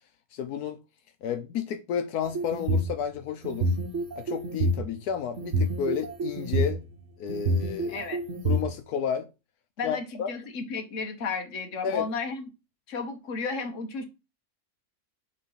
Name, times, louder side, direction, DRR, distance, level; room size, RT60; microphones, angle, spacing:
voice 1, 0.3-0.8 1.2-3.7 4.2-6.8 7.2-8.0 8.4-9.3 9.8-10.3 11.8-12.1, left 7 dB, 80° left, 1.2 m, -31 dB
sound 1, 2.2-2.9 3.4-4.8 5.4-6.7 7.3-8.6, right 1 dB, 55° right, 1.3 m, -27 dB
voice 2, 7.9-8.2 9.8-12.5 12.9-14.1, left 4 dB, 55° left, 1.4 m, -33 dB
6.6 x 3.2 x 5.5 m
omnidirectional pair, 1.6 m